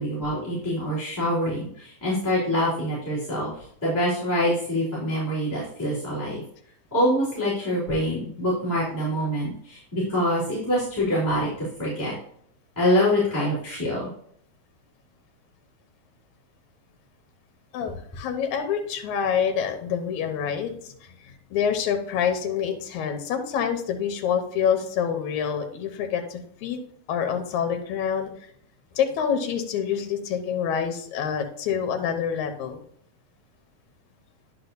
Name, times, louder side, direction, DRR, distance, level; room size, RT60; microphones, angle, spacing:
voice 1, 0.0-6.4 6.9-12.1 12.7-14.1, equal, 5° left, -11 dB, 3.3 m, -25 dB
voice 2, 17.7-26.8 27.1-28.3 29.0-32.8, left 7 dB, 75° left, 5 dB, 2.3 m, -27 dB
10.0 x 6.4 x 2.7 m, 0.65 s
omnidirectional pair, 3.4 m